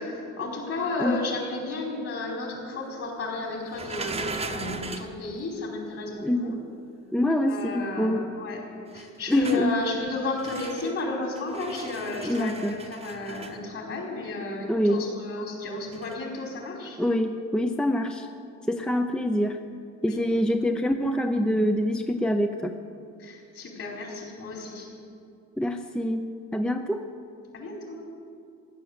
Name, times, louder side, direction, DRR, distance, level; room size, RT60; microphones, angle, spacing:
voice 1, 0.0-6.5 7.5-8.6 8.9-17.0 20.0-20.2 23.2-24.9 27.5-28.0, left 2 dB, 50° left, -1 dB, 5.0 m, -33 dB
sound 1, 3.7-5.2 8.9-9.7 10.4-11.0 11.3-13.6 15.9-16.1, right 4 dB, 20° right, 1.0 m, -38 dB
voice 2, 6.2-6.6 7.1-8.3 9.3-9.7 12.2-12.8 14.7-15.0 17.0-18.3 18.7-19.6 20.0-22.7 25.6-26.3 26.5-27.0, left 1 dB, 5° left, 6 dB, 0.6 m, -25 dB
15.0 x 11.5 x 8.3 m, 2.5 s
cardioid pair, 120°, 29 cm